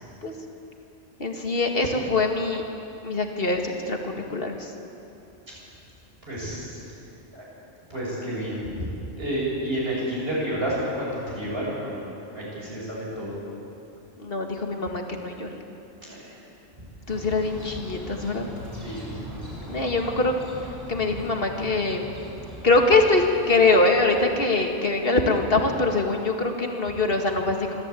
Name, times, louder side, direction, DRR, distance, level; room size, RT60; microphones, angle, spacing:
voice 1, 1.2-2.6 3.0-4.0 4.3-4.7 14.2-15.6 17.1-18.5 19.7-20.3 20.9-22.0 22.6-27.8, left 3 dB, 45° left, 2 dB, 2.3 m, -23 dB
voice 2, 6.3-6.8 7.3-7.4 7.9-8.9 9.2-13.4 16.0-16.3 18.8-19.1, right 1 dB, 50° right, -5 dB, 7.7 m, -30 dB
sound 1, 17.1-25.2, equal, 15° right, 6.0 m, -40 dB
25.5 x 15.0 x 8.6 m, 2.8 s
omnidirectional pair, 1.3 m